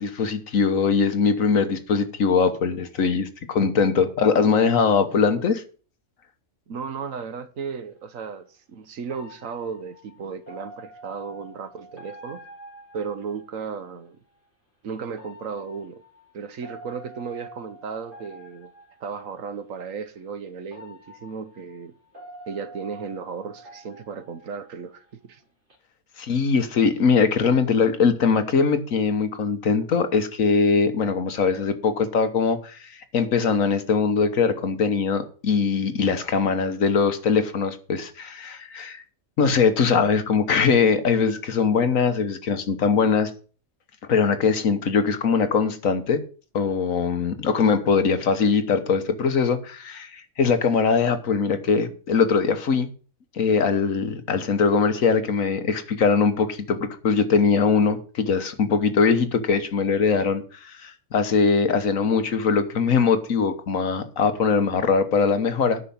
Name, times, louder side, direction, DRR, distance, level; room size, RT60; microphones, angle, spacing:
voice 1, 0.0-5.6 26.2-39.0 39.4-43.3 44.1-46.2 46.5-52.9 53.3-65.8, left 5 dB, 70° left, 1.6 m, -21 dB
voice 2, 6.7-12.4 12.9-14.2 14.8-16.0 16.3-18.7 19.0-21.9 22.5-25.4, right 6 dB, 70° right, 1.4 m, -35 dB
sound 1, 7.6-7.7 9.1-13.8 15.1-19.3 20.1-20.2 20.7-25.1 25.4-25.7, right 1 dB, 35° right, 3.5 m, -46 dB
9.6 x 5.7 x 8.5 m
omnidirectional pair, 1.5 m